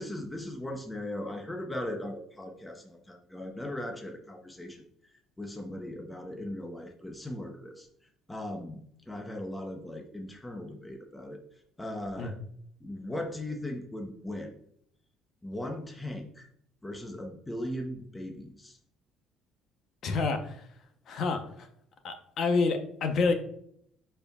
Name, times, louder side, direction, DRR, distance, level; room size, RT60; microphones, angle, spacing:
voice 1, 0.0-4.8 5.4-7.9 8.3-11.4 11.8-12.3 12.8-14.5 15.4-16.5 16.8-18.8, left 1 dB, 5° left, 3 dB, 0.6 m, -38 dB
voice 2, 20.0-20.6 21.1-21.7 22.0-23.3, left 4 dB, 45° left, 6 dB, 0.8 m, -28 dB
10.5 x 4.5 x 2.3 m, 0.69 s
cardioid pair, 170°, 0 cm